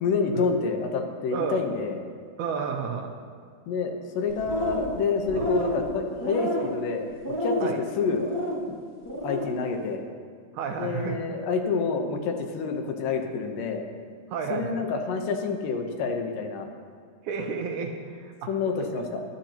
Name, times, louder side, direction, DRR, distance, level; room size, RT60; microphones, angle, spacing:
voice 1, 0.0-2.0 3.7-7.0 7.4-7.7 8.0-8.2 8.7-8.8 9.2-10.0 10.8-13.9 14.5-16.7 18.5-19.2, left 5 dB, 80° left, 4 dB, 2.6 m, -28 dB
voice 2, 2.4-3.1 5.3-5.5 7.6-7.8 10.5-11.2 14.3-14.8 17.2-18.5 19.0-19.1, right 6 dB, 75° right, 3 dB, 2.0 m, -31 dB
sound 1, 4.3-5.0 5.2-5.8 6.2-6.8 7.2-7.7 8.1-8.6 9.0-9.5, equal, 20° left, 0.6 m, -29 dB
19.5 x 9.7 x 2.9 m, 2.1 s
omnidirectional pair, 3.9 m